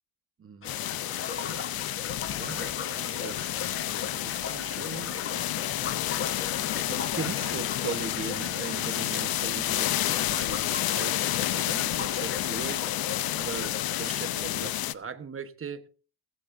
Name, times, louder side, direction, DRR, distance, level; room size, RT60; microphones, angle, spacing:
voice 1, 0.4-0.7 1.5-1.8 2.3-3.5 3.9-5.5 6.4-12.9 13.4-13.7 14.0-15.9, right 6 dB, 30° right, 1.1 m, -40 dB
sound 1, 0.6-14.9, left 13 dB, 50° left, 0.7 m, -30 dB
sound 2, 0.6-14.2, left 6 dB, 30° left, 1.3 m, -39 dB
sound 3, 3.5-10.2, right 7 dB, 70° right, 2.2 m, -53 dB
17.0 x 15.5 x 2.6 m
cardioid pair, 120°, 46 cm